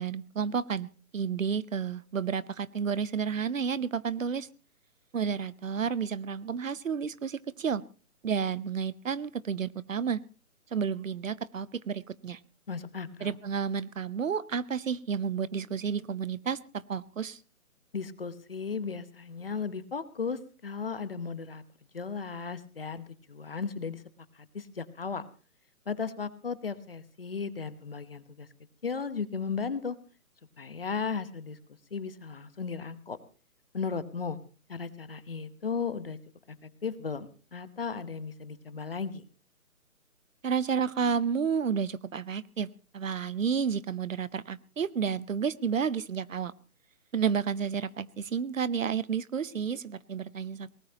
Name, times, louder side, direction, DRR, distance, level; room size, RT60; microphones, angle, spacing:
voice 1, 0.0-4.5 5.1-7.8 8.2-10.2 10.7-12.4 13.2-17.4 40.4-42.7 42.9-46.5 47.1-50.7, right 6 dB, 65° right, 19 dB, 0.8 m, -31 dB
voice 2, 12.7-13.4 17.9-21.6 21.9-24.0 24.3-25.3 25.9-28.5 28.8-30.0 30.6-33.2 33.7-34.4 34.7-36.2 36.5-39.2, left 5 dB, 40° left, 14 dB, 1.1 m, -35 dB
22.0 x 19.0 x 2.9 m, 0.36 s
hypercardioid pair, 175°, 42 cm